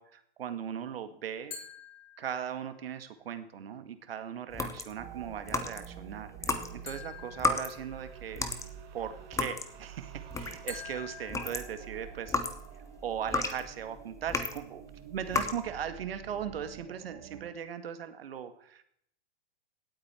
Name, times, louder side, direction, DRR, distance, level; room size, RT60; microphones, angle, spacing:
voice 1, 0.0-1.6 2.2-8.5 8.9-12.4 13.0-18.8, right 8 dB, 75° right, 9 dB, 1.9 m, -38 dB
sound 1, 1.5-2.8 6.9-8.4 10.7-12.4, left 7 dB, 85° left, 5.8 m, -47 dB
sound 2, 4.5-6.0 6.4-10.8 11.2-14.7 15.2-15.6, left 3 dB, 10° left, 1.3 m, -33 dB
sound 3, 5.0-17.5, right 9 dB, 35° right, 2.1 m, -49 dB
17.0 x 8.8 x 4.5 m, 0.69 s
hypercardioid pair, 125°, 30 cm